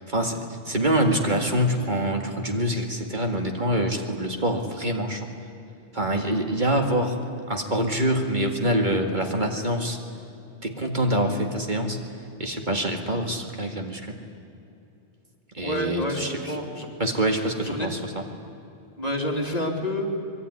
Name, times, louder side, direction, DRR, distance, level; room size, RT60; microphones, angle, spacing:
voice 1, 0.0-5.3 5.9-7.2 7.5-10.0 10.6-12.0 12.4-14.2 15.5-16.5 17.0-18.2, right 1 dB, 45° right, 3 dB, 2.2 m, -25 dB
voice 2, 15.6-16.9 17.6-17.9 19.0-20.1, left 1 dB, 35° left, 1 dB, 3.1 m, -28 dB
25.0 x 22.0 x 9.7 m, 2.8 s
omnidirectional pair, 1.1 m